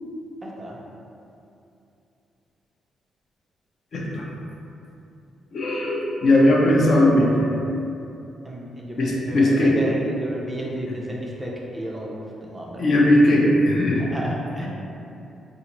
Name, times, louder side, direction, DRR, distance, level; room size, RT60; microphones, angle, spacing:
voice 1, 0.4-0.8 8.4-12.9 13.9-14.7, right 1 dB, 15° right, -3 dB, 0.4 m, -33 dB
voice 2, 3.9-4.2 5.5-7.5 9.0-9.8 12.8-14.0, left 1 dB, 45° left, -3 dB, 0.5 m, -18 dB
4.0 x 2.4 x 2.9 m, 2.8 s
cardioid pair, 145°, 0 cm